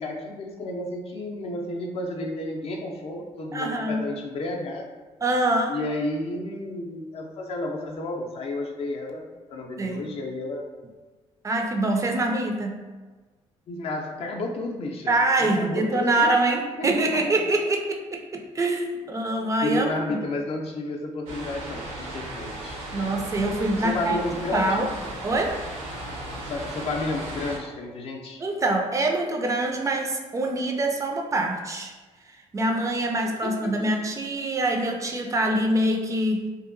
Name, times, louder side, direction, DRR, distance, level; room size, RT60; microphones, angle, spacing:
voice 1, 0.0-4.9 5.7-9.2 9.5-10.7 13.7-16.3 16.8-17.3 19.6-22.8 23.8-24.9 26.4-28.4 33.4-33.9, left 2 dB, 55° left, 1 dB, 0.4 m, -31 dB
voice 2, 3.5-4.0 5.2-5.8 9.8-10.1 11.4-12.9 15.1-19.9 22.9-24.2 24.5-24.9 25.2-25.6 28.4-31.9 32.5-36.5, right 2 dB, 25° right, 2 dB, 0.3 m, -25 dB
sound 1, 21.3-27.6, right 1 dB, 90° right, 0.7 m, -36 dB
2.7 x 2.2 x 2.5 m, 1.3 s
cardioid pair, 90°, 12 cm